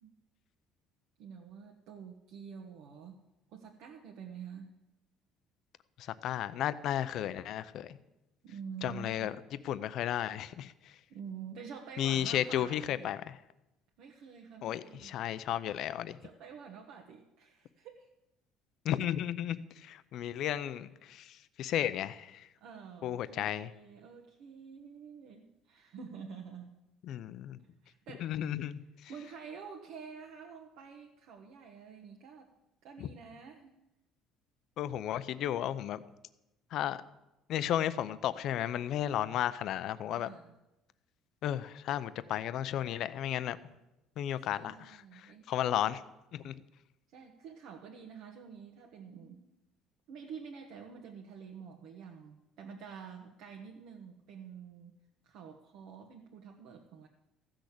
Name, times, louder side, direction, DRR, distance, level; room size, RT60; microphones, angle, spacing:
voice 1, 1.2-3.2 3.5-4.7 8.4-9.3 11.1-13.2 14.0-15.1 16.2-18.1 22.6-26.7 27.8-28.3 29.1-32.5 32.8-33.7 40.1-40.6 44.4-45.5 47.1-49.4 50.1-55.0 55.2-57.1, right 6 dB, 65° right, 1 dB, 1.2 m, -48 dB
voice 2, 6.0-8.0 8.8-9.3 9.6-10.7 12.0-13.3 14.6-16.2 18.8-22.5 23.0-23.7 27.1-27.6 28.2-29.1 33.0-33.1 34.8-36.0 36.7-37.0 37.5-40.3 41.4-43.6 44.2-46.0 46.3-46.5, left 11 dB, 50° left, 14 dB, 0.5 m, -34 dB
14.5 x 6.4 x 8.3 m, 0.94 s
cardioid pair, 165°, 0 cm